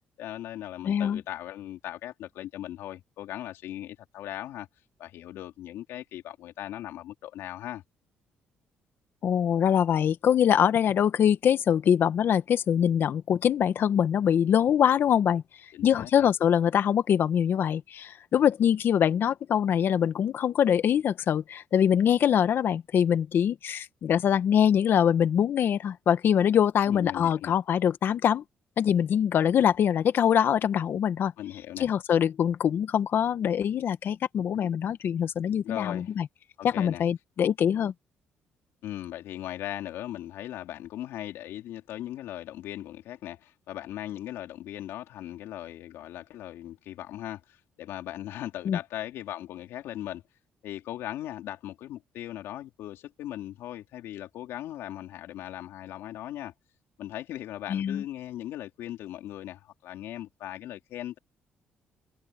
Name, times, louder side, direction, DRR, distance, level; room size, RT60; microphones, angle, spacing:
voice 1, 0.2-4.7 5.0-7.8 15.7-16.3 26.9-27.5 31.4-31.9 34.5-34.7 35.6-36.1 36.6-37.0 38.8-50.2 50.6-56.5 57.0-61.2, left 13 dB, 80° left, 4.0 m, -38 dB
voice 2, 0.8-1.2 9.2-15.4 15.8-28.4 28.8-31.3 31.8-36.3 36.6-37.9 48.6-48.8 57.7-58.0, left 9 dB, 60° left, 1.4 m, -24 dB
cardioid pair, 80°, 4 cm